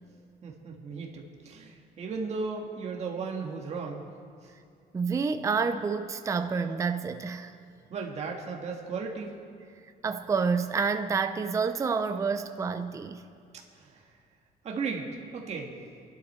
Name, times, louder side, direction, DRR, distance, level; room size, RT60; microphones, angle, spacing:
voice 1, 0.4-4.0 7.9-9.3 13.8-14.0 14.6-15.1 15.3-15.7, right 4 dB, 40° right, 0 dB, 1.8 m, -35 dB
voice 2, 4.9-7.5 10.0-13.2, right 5 dB, 20° right, 8 dB, 0.4 m, -28 dB
24.5 x 11.5 x 4.4 m, 2.4 s
cardioid pair, 175°, 17 cm